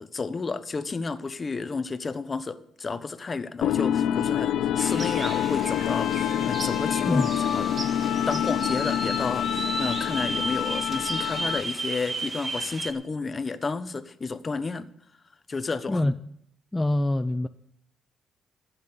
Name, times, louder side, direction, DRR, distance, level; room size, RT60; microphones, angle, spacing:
voice 1, 0.0-7.8 8.2-14.9 15.5-16.0, left 4 dB, 30° left, 1.1 m, -31 dB
sound 1, 3.6-11.8, left 10 dB, 80° left, 0.5 m, -26 dB
sound 2, 4.8-12.9, right 3 dB, 35° right, 1.6 m, -34 dB
voice 2, 16.7-17.5, left 1 dB, 10° left, 0.6 m, -24 dB
12.5 x 8.9 x 8.2 m
cardioid pair, 90°, 0 cm